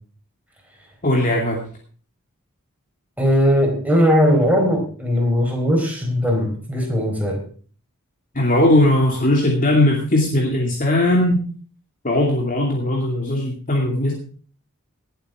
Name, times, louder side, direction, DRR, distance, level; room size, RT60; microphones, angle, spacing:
voice 1, 1.0-1.6 8.3-11.4 12.0-14.1, left 1 dB, 40° left, -1 dB, 2.5 m, -18 dB
voice 2, 3.2-7.4, equal, 5° right, 1 dB, 4.3 m, -19 dB
19.0 x 8.1 x 4.9 m, 0.43 s
head